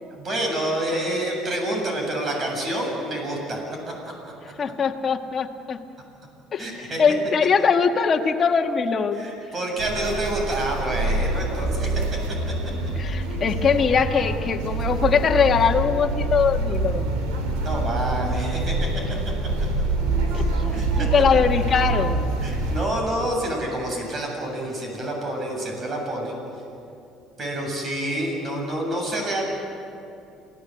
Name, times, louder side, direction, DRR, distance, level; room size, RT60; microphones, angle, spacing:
voice 1, 0.1-3.6 4.0-4.1 6.6-7.0 9.1-12.2 12.5-12.6 17.6-18.9 20.7-21.1 22.4-26.4 27.4-29.4, right 1 dB, 35° right, 1 dB, 7.8 m, -28 dB
voice 2, 4.6-5.8 6.5-6.6 7.0-9.2 13.0-17.1 20.3-20.4 21.0-22.3, left 6 dB, 35° left, 3 dB, 1.7 m, -21 dB
sound 1, 9.8-22.9, right 2 dB, 85° right, 4.0 m, -25 dB
28.0 x 17.5 x 8.0 m, 2.7 s
cardioid pair, 105°, 0 cm